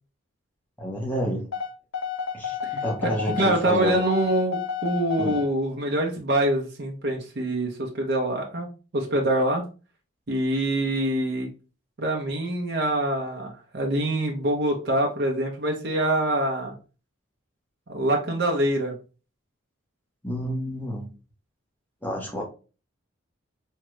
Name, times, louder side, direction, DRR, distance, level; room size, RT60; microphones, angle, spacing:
voice 1, 0.8-1.5 2.3-4.0 5.2-5.4 20.2-21.1 22.0-22.4, equal, 10° left, -1 dB, 0.8 m, -29 dB
sound 1, 1.5-5.5, left 7 dB, 70° left, 0.7 m, -31 dB
voice 2, 2.6-8.7 8.9-9.6 10.3-11.5 12.0-16.7 17.9-19.0, right 1 dB, 50° right, 0 dB, 0.6 m, -25 dB
3.6 x 2.2 x 3.0 m, 0.34 s
head